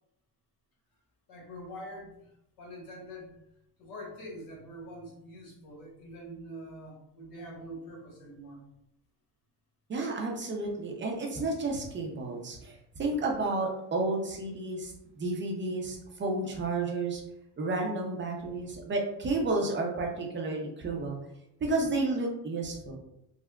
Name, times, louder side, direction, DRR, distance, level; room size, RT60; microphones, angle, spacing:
voice 1, 1.3-2.3 2.6-3.3 3.8-8.6, equal, 70° left, -3 dB, 1.3 m, -44 dB
voice 2, 9.9-17.2 17.6-21.2 21.6-23.0, right 2 dB, 30° right, 0 dB, 0.6 m, -31 dB
3.6 x 2.1 x 2.2 m, 0.79 s
cardioid pair, 105°, 35 cm